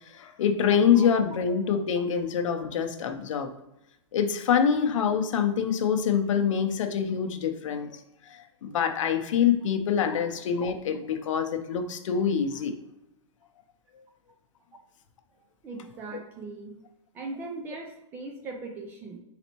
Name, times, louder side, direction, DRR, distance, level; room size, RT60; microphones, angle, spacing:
voice 1, 0.1-3.5 4.1-8.0 8.3-12.7, left 7 dB, 75° left, 6 dB, 0.6 m, -25 dB
voice 2, 15.6-16.8 17.1-19.2, right 3 dB, 15° right, 3 dB, 0.3 m, -39 dB
4.3 x 4.0 x 2.9 m, 0.87 s
supercardioid pair, 165°, 16 cm